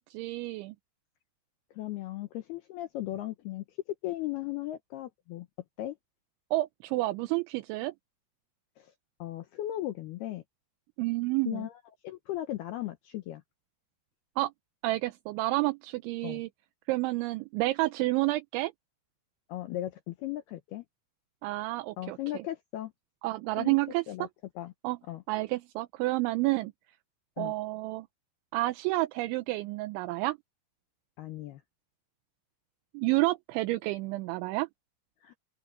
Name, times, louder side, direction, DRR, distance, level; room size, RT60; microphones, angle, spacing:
voice 1, 0.1-0.7 6.5-7.9 11.0-11.7 14.4-14.5 14.8-16.5 16.9-18.7 21.4-22.2 23.2-24.3 24.8-25.0 25.3-26.7 27.4-28.1 28.5-30.4 32.9-34.7, right 20 dB, 80° right, 2.8 m, -30 dB
voice 2, 1.7-3.6 4.0-5.5 5.8-6.0 8.8-8.9 9.2-10.4 11.5-13.4 16.2-16.4 19.5-20.8 22.0-22.9 23.6-23.8 24.1-24.3 24.6-24.7 25.1-25.2 27.4-27.5 31.2-31.6 35.2-35.4, left 14 dB, 85° left, 2.2 m, -37 dB
open air
omnidirectional pair, 5.9 m